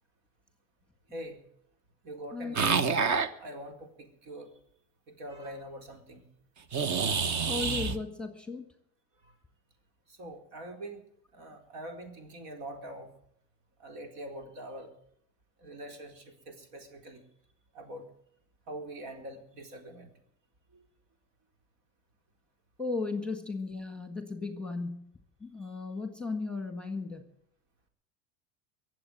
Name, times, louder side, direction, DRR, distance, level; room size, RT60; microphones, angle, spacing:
voice 1, 2.0-2.7 3.4-4.5 5.2-6.2 10.1-11.0 11.3-13.1 13.8-14.9 15.6-17.2 17.7-18.1 18.7-20.1 20.7-20.8, right 1 dB, 70° right, 4 dB, 4.3 m, -43 dB
sound 1, 2.6-3.3 6.7-8.0, right 5 dB, 40° right, 1.3 m, -27 dB
voice 2, 7.4-8.6 22.8-25.1 25.4-27.2, left 3 dB, ahead, 6 dB, 1.7 m, -35 dB
22.5 x 7.9 x 7.8 m, 0.73 s
supercardioid pair, 110°, 45 cm